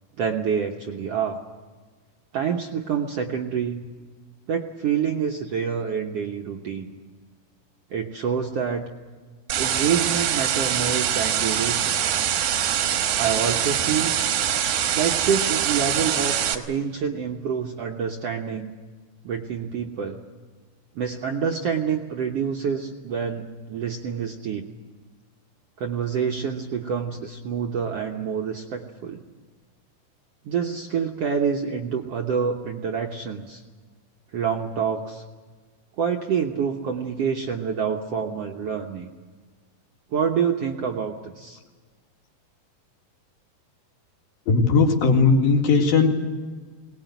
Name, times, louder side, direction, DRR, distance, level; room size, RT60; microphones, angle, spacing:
voice 1, 0.2-1.4 2.3-3.8 4.5-6.9 7.9-8.9 9.6-12.0 13.2-14.1 14.9-18.7 19.2-20.2 20.9-24.7 25.8-29.2 30.4-33.6 34.3-35.2 36.0-39.1 40.1-41.6, right 7 dB, 65° right, 2 dB, 1.5 m, -27 dB
sound 1, 9.5-16.5, right 9 dB, 85° right, 3.2 m, -24 dB
voice 2, 44.5-46.1, left 4 dB, 80° left, 1 dB, 4.1 m, -18 dB
21.5 x 19.0 x 9.2 m, 1.5 s
omnidirectional pair, 4.1 m